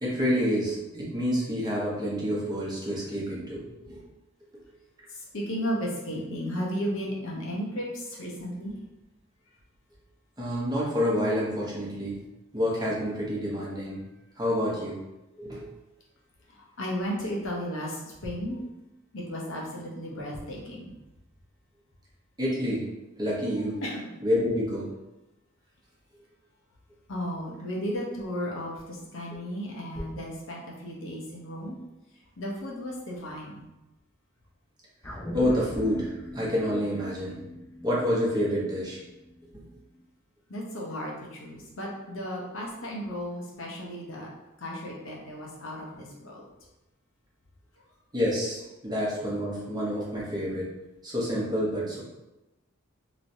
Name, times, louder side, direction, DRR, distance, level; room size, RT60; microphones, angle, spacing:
voice 1, 0.0-4.0 10.4-12.2 12.5-14.0 14.4-15.0 15.4-15.6 22.4-23.8 24.2-24.9 35.3-37.4 37.8-39.0 48.1-50.7 51.0-52.0, equal, 20° right, -6 dB, 0.9 m, -28 dB
voice 2, 5.1-8.8 16.5-18.6 19.1-20.8 23.8-24.1 27.1-31.8 32.4-33.6 40.5-44.3 44.6-46.4, equal, 65° left, -2 dB, 0.9 m, -34 dB
sound 1, 35.0-39.6 40.0-40.1, left 1 dB, 10° left, 0.4 m, -40 dB
3.1 x 2.9 x 2.6 m, 1.0 s
head